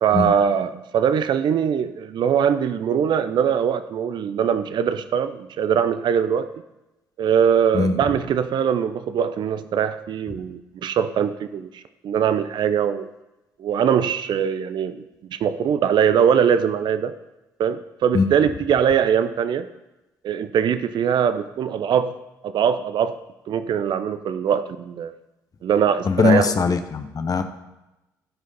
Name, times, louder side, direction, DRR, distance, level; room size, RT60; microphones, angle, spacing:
voice 1, 0.0-6.5 7.2-13.1 13.6-15.0 15.3-17.1 17.6-19.7 20.2-22.1 22.4-23.1 23.5-25.1 25.6-26.5, right 8 dB, 55° right, 12 dB, 0.5 m, -21 dB
voice 2, 26.0-27.4, left 5 dB, 40° left, 8 dB, 0.9 m, -20 dB
14.5 x 5.0 x 4.1 m, 0.98 s
hypercardioid pair, 45°, 9 cm